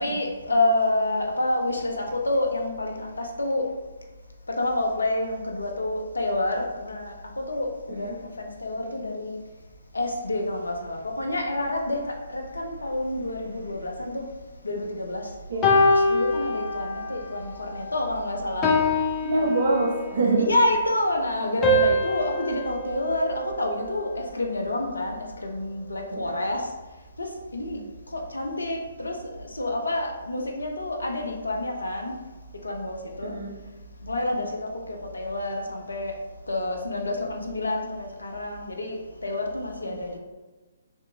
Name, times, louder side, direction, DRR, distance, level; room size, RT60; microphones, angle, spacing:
voice 1, 0.0-3.6 4.6-9.4 9.9-14.2 14.6-15.3 15.9-18.7 20.4-26.6 27.2-27.8 28.1-32.1 32.6-33.3 34.0-36.1 36.5-40.2, left 1 dB, 75° left, 2 dB, 0.5 m, -28 dB
voice 2, 15.5-15.9 19.2-20.5 26.1-26.4 27.7-27.9 33.2-33.5, right 2 dB, 55° right, 1 dB, 0.5 m, -25 dB
sound 1, 15.6-17.2 17.6-17.9 18.6-20.3 21.6-24.0, left 1 dB, 20° left, 0.5 m, -24 dB
2.6 x 2.5 x 2.6 m, 1.2 s
figure-of-eight pair, 130°, 0 cm